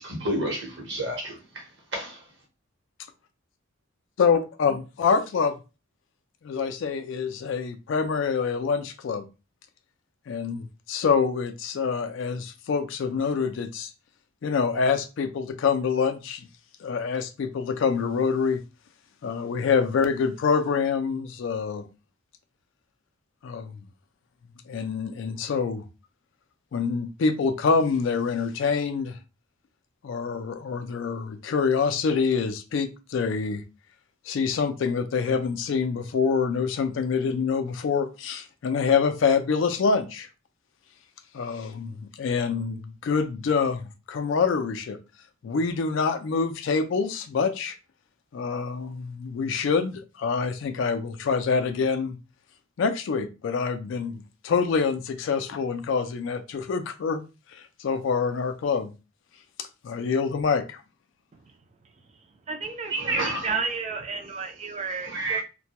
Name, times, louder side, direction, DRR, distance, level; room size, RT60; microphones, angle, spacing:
voice 1, 0.0-1.7 1.9-2.2 62.9-63.5 65.0-65.4, right 1 dB, 55° right, 0.9 m, -29 dB
voice 2, 4.2-5.6 6.4-9.3 10.3-13.9 14.4-16.5 16.8-18.6 19.2-21.9 23.4-23.8 24.7-25.8 26.7-29.2 30.0-33.6 34.3-40.3 41.3-45.0 45.4-47.8 48.3-52.2 52.8-57.2 57.5-58.9 59.6-60.8, left 5 dB, 60° left, 0.3 m, -26 dB
voice 3, 62.5-65.4, right 4 dB, 30° right, 0.4 m, -32 dB
2.2 x 2.1 x 2.8 m
head